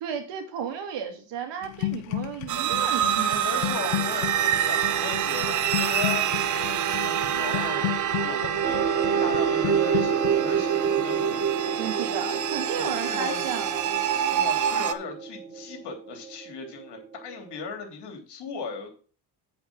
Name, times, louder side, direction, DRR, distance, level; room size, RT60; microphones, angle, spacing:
voice 1, 0.0-4.3 11.8-14.0, right 8 dB, 65° right, 6 dB, 2.2 m, -34 dB
sound 1, 1.6-13.5 13.7-14.2, left 16 dB, 85° left, 0.9 m, -35 dB
sound 2, 2.5-14.9, right 9 dB, 40° right, 0.9 m, -26 dB
voice 2, 3.4-7.9 8.2-11.7 12.8-13.4 14.3-18.9, left 5 dB, 60° left, 4 dB, 3.3 m, -37 dB
sound 3, 8.6-17.9, right 5 dB, 20° right, 1.3 m, -33 dB
7.9 x 5.2 x 6.4 m, 0.39 s
supercardioid pair, 90°, 46 cm